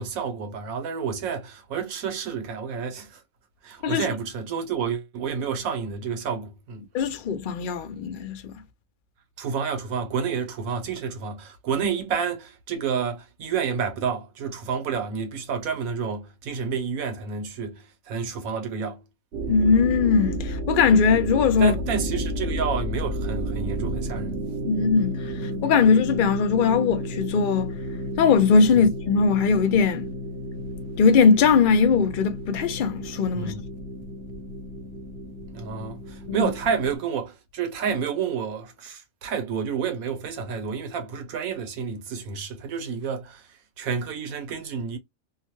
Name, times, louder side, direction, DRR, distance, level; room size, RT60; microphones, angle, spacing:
voice 1, 0.0-3.2 3.6-6.8 9.4-19.0 19.5-19.6 21.6-24.4 28.8-28.9 33.3-33.6 35.5-43.5 43.8-45.0, right 6 dB, 75° right, 1.2 m, -29 dB
voice 2, 6.9-8.4 19.5-21.7 24.7-27.7 28.2-30.1 31.0-33.5 36.3-36.5, left 5 dB, 65° left, 0.5 m, -20 dB
sound 1, 19.3-37.0, equal, 55° right, 0.8 m, -32 dB
2.7 x 2.2 x 3.0 m
omnidirectional pair, 1.5 m